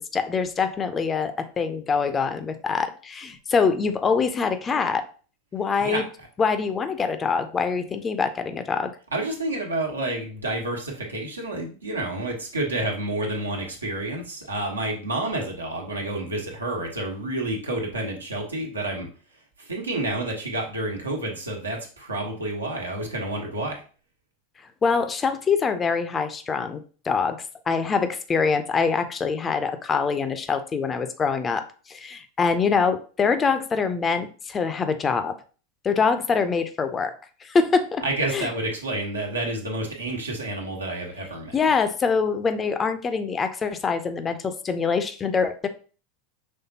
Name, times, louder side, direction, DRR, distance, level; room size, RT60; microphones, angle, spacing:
voice 1, 0.1-5.0 5.5-6.0 6.4-8.9 24.8-27.4 27.7-31.6 31.9-35.3 35.8-37.1 37.4-38.0 38.3-38.5 41.5-45.7, left 5 dB, 25° left, 9 dB, 0.5 m, -24 dB
voice 2, 5.8-6.3 9.1-19.1 19.6-23.8 38.0-41.6, right 2 dB, 80° right, 0 dB, 1.2 m, -29 dB
5.5 x 3.4 x 2.8 m, 0.38 s
figure-of-eight pair, 85°, 0 cm